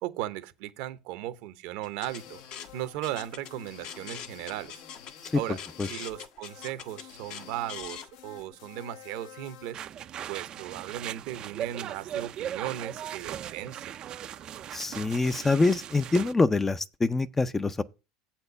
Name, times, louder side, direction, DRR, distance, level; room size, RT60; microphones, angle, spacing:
voice 1, 0.0-2.4 2.7-4.8 5.3-5.6 5.8-9.8 10.3-13.9, right 13 dB, 70° right, 0.9 m, -37 dB
sound 1, 1.8-8.1, left 8 dB, 50° left, 1.0 m, -43 dB
sound 2, 2.0-9.7, left 10 dB, 75° left, 1.3 m, -50 dB
sound 3, 9.7-16.3, right 10 dB, 40° right, 0.4 m, -38 dB
voice 2, 14.7-17.8, left 3 dB, 15° left, 0.5 m, -25 dB
7.9 x 4.4 x 6.8 m
supercardioid pair, 115°, 2 cm